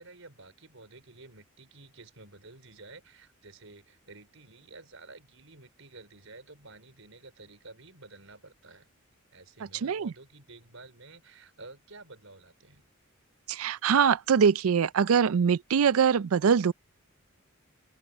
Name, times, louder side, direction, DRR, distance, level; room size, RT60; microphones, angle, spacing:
voice 1, 0.0-8.9 9.3-12.9, right 3 dB, 70° right, 5.4 m, -51 dB
voice 2, 9.8-10.1 13.5-16.7, right 7 dB, 90° right, 0.4 m, -23 dB
open air
head